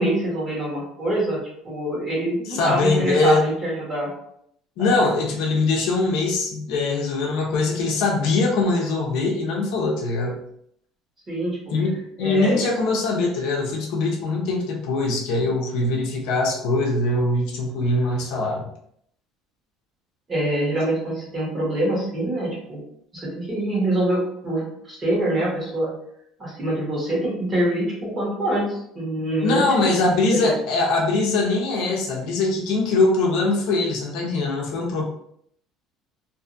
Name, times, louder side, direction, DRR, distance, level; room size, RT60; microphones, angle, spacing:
voice 1, 0.0-1.4 1.6-4.1 4.8-5.1 11.3-11.7 12.2-12.6 20.3-22.8 23.1-25.9 26.4-29.9, right 1 dB, 20° right, -6 dB, 1.2 m, -25 dB
voice 2, 2.5-3.4 4.8-10.4 11.7-18.7 29.4-35.0, left 3 dB, 70° left, 0 dB, 0.6 m, -22 dB
2.6 x 2.4 x 2.5 m, 0.70 s
cardioid pair, 150°, 0 cm